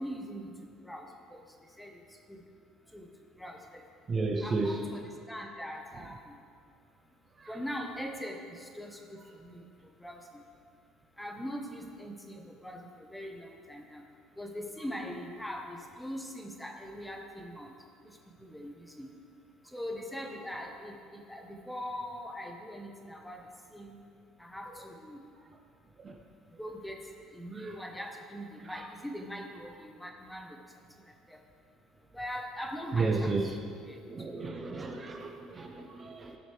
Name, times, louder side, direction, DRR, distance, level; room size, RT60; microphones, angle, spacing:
voice 1, 0.0-1.4 1.8-1.9 2.3-2.4 2.9-3.1 3.4-3.8 4.4-6.2 7.5-9.6 10.0-10.2 11.2-12.3 12.6-14.0 14.4-17.7 18.4-19.1 19.7-23.4 23.7-24.0 24.4-25.2 26.6-27.0 27.3-30.5 31.3-31.4 32.1-33.3 33.9-34.0 34.4-34.5, equal, 5° left, 2 dB, 1.1 m, -41 dB
voice 2, 4.1-4.8 26.0-26.2 27.6-27.7 32.9-33.6 34.1-36.4, right 3 dB, 30° right, 3 dB, 0.7 m, -32 dB
15.5 x 6.4 x 3.3 m, 2.3 s
cardioid pair, 105°, 0 cm